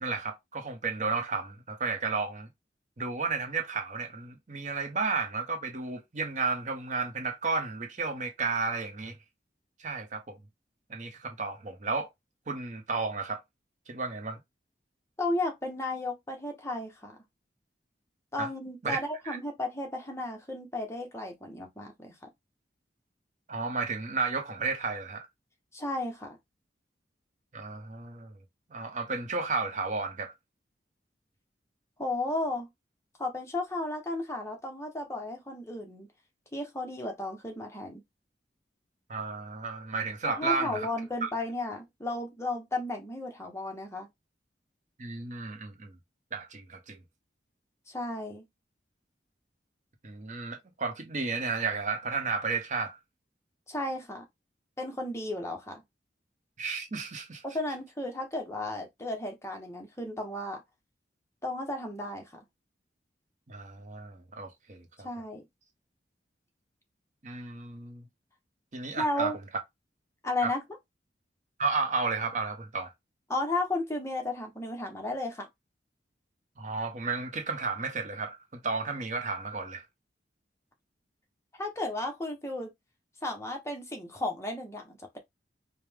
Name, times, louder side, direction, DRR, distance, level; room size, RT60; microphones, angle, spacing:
voice 1, 0.0-2.5 3.0-9.2 9.8-10.4 10.9-12.1 12.5-13.4 13.9-14.4 18.4-18.5 18.8-19.4 23.5-25.3 27.5-28.3 28.7-30.3 39.1-40.9 45.0-45.9 46.3-47.0 50.0-53.0 56.6-57.4 63.5-65.1 67.2-68.1 68.7-69.3 70.4-70.5 71.6-72.9 76.6-79.8, right 4 dB, 45° right, 0.8 m, -33 dB
voice 2, 15.2-17.1 18.3-22.1 25.7-26.4 32.0-32.7 33.2-36.1 36.5-38.0 40.4-44.1 47.9-48.4 53.7-54.2 54.8-55.8 57.4-60.6 61.4-62.4 65.0-65.4 69.0-69.4 70.2-70.6 73.3-75.5 81.5-82.7 83.2-85.2, left 2 dB, 15° left, 0.9 m, -34 dB
4.9 x 2.2 x 3.4 m
head